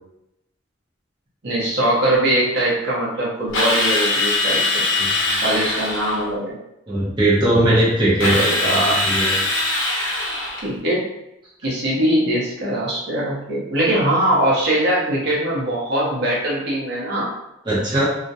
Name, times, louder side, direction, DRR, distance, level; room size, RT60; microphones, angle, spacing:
voice 1, 1.4-4.8 5.4-6.5 8.3-9.0 10.6-11.0 11.6-17.3, right 1 dB, 55° right, -5 dB, 0.7 m, -21 dB
Drill, 3.5-6.2 8.2-10.7, left 2 dB, 85° left, 0.7 m, -21 dB
voice 2, 5.0-5.4 6.9-8.4 8.6-9.4 17.7-18.1, right 1 dB, 25° right, -8 dB, 0.6 m, -19 dB
2.3 x 2.1 x 2.7 m, 0.85 s
head